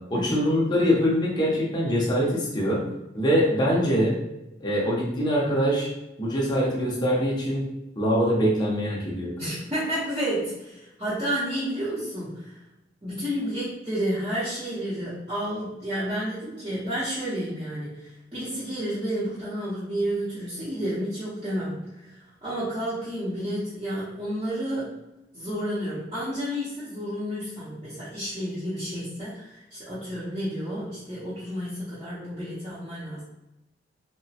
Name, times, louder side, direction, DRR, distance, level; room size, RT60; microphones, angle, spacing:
voice 1, 0.1-2.8 3.1-4.2 4.6-5.9 6.2-7.6 8.0-9.3, equal, 25° left, -4 dB, 0.6 m, -23 dB
voice 2, 9.4-12.6 13.0-25.0 25.3-33.2, equal, 25° right, -12 dB, 0.7 m, -31 dB
2.8 x 2.1 x 2.7 m, 0.94 s
head